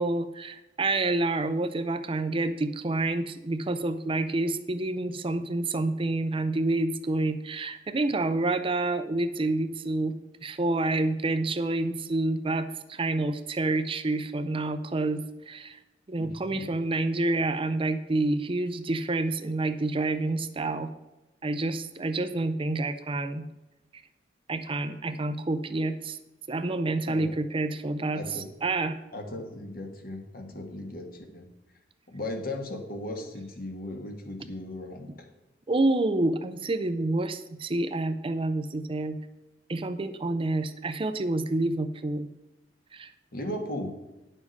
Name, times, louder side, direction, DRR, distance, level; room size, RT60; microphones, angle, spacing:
voice 1, 0.0-15.8 16.1-20.9 21.4-23.4 24.5-26.2 26.5-29.0 35.7-39.2 39.7-42.3 42.9-43.1, right 2 dB, 30° right, 10 dB, 0.5 m, -28 dB
voice 2, 16.2-16.7 27.1-27.4 28.1-28.5 29.1-31.4 32.1-35.3 43.3-43.9, left 1 dB, 55° left, 4 dB, 1.5 m, -37 dB
9.8 x 7.2 x 5.3 m, 0.99 s
head